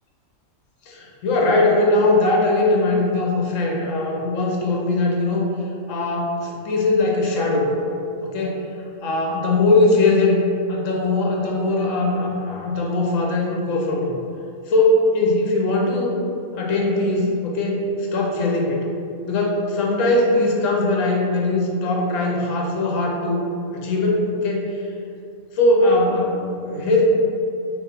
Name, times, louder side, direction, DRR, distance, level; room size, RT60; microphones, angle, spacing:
voice 1, 0.9-5.5 5.9-7.7 8.2-8.7 9.0-14.2 14.7-16.1 16.5-17.8 18.1-18.9 19.3-23.5 23.7-24.9 25.5-27.0, left 2 dB, 65° left, -2 dB, 1.0 m, -20 dB
3.1 x 3.1 x 3.8 m, 2.7 s
omnidirectional pair, 1.5 m